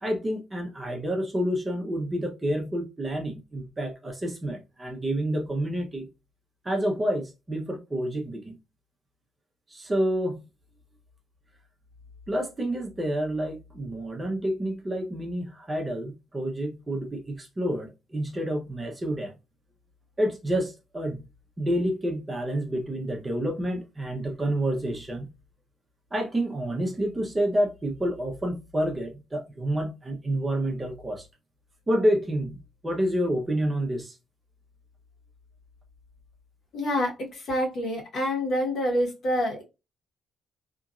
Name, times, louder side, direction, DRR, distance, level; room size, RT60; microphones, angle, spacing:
voice 1, 0.0-6.1 6.6-8.5 9.7-10.4 12.3-19.3 20.2-21.2 21.6-25.3 26.1-31.3 31.9-34.2, right 1 dB, 20° right, 0.8 m, -29 dB
voice 2, 36.7-39.6, equal, 60° left, 1.6 m, -27 dB
2.9 x 2.5 x 2.5 m
cardioid pair, 90°, 0 cm